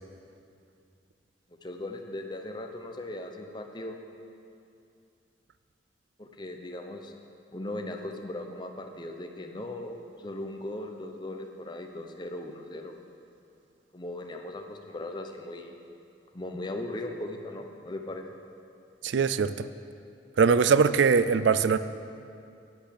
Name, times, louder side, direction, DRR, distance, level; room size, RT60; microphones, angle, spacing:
voice 1, 1.6-4.0 6.2-7.1 7.5-12.9 13.9-15.8 16.3-18.3, left 1 dB, 25° left, 4 dB, 0.8 m, -38 dB
voice 2, 19.0-19.7 20.4-21.8, right 5 dB, 90° right, 13 dB, 0.4 m, -22 dB
8.9 x 7.9 x 8.2 m, 2.5 s
head